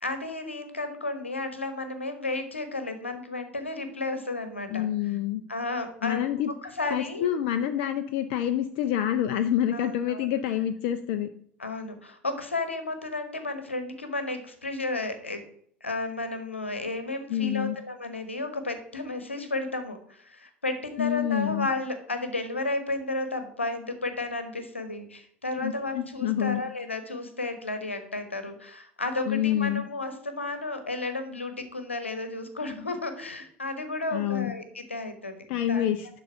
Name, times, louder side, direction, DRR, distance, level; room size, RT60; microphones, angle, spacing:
voice 1, 0.0-4.9 5.5-6.2 6.6-7.3 9.7-10.3 11.6-15.4 15.8-35.3 35.7-35.8, left 2 dB, 85° left, 9 dB, 1.1 m, -33 dB
voice 2, 4.7-5.4 6.0-6.5 6.9-11.3 17.3-17.8 21.0-21.7 25.6-26.6 29.3-29.8 34.1-34.5 35.5-36.1, left 11 dB, 55° left, 10 dB, 0.5 m, -27 dB
11.5 x 4.0 x 5.7 m, 0.62 s
figure-of-eight pair, 70°, 6 cm